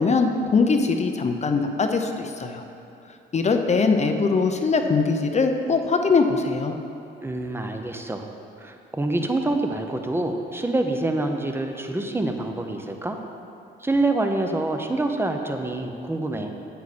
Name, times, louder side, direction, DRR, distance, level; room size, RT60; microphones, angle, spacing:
voice 1, 0.0-2.6 3.3-6.7, left 4 dB, 35° left, 5 dB, 0.7 m, -21 dB
voice 2, 7.2-8.3 8.6-13.2 13.8-16.5, right 2 dB, 10° right, 4 dB, 0.9 m, -26 dB
9.6 x 8.2 x 4.3 m, 2.7 s
cardioid pair, 90°, 20 cm